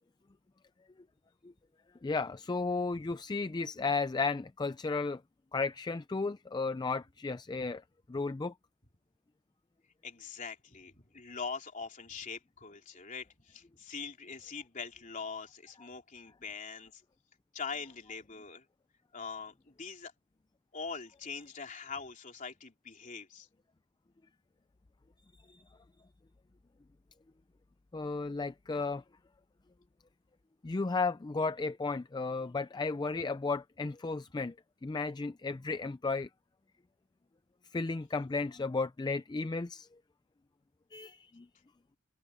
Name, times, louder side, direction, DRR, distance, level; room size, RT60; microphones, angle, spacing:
voice 1, 2.0-5.2 5.5-7.8 8.1-8.5 25.5-25.6 27.9-29.0 30.6-34.5 34.8-36.3 37.7-39.9 40.9-41.5, left 3 dB, 20° left, 0.3 m, -34 dB
voice 2, 10.0-17.0 17.5-18.6 19.1-20.1 20.7-23.5, left 5 dB, 35° left, 3.3 m, -43 dB
open air
head